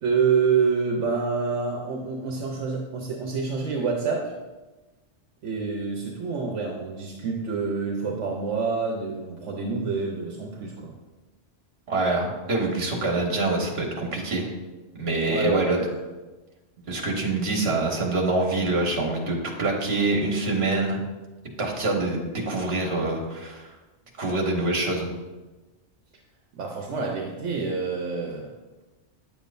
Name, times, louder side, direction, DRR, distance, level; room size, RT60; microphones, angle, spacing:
voice 1, 0.0-4.3 5.4-10.9 15.2-15.9 26.6-28.5, right 5 dB, 80° right, 0 dB, 1.1 m, -27 dB
voice 2, 11.9-14.5 15.0-15.8 16.9-21.0 21.6-23.7 24.2-25.1, right 2 dB, 60° right, 0 dB, 1.5 m, -25 dB
9.2 x 7.2 x 2.6 m, 1.2 s
omnidirectional pair, 1.2 m